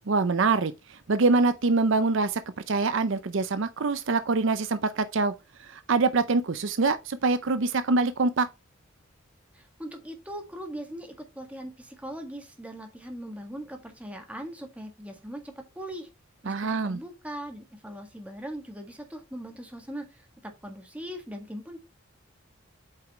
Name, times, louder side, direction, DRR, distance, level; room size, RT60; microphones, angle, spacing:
voice 1, 0.1-2.4 2.7-5.3 5.6-8.5 16.5-17.0, right 3 dB, 60° right, 0.6 m, -24 dB
voice 2, 9.5-16.1 16.4-21.8, equal, 5° right, 1.7 m, -40 dB
8.3 x 4.9 x 3.1 m
head